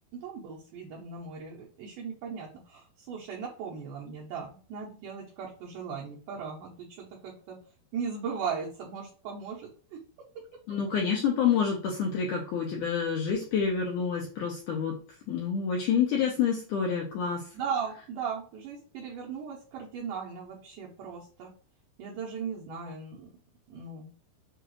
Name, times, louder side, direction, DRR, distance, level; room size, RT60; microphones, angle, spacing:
voice 1, 0.1-7.6 7.9-9.7 17.5-21.5 22.0-23.3 23.7-24.1, right 6 dB, 75° right, -3 dB, 2.0 m, -37 dB
voice 2, 10.7-15.0 15.3-17.4, left 7 dB, 85° left, -1 dB, 1.8 m, -28 dB
6.9 x 2.4 x 3.1 m, 0.41 s
omnidirectional pair, 4.6 m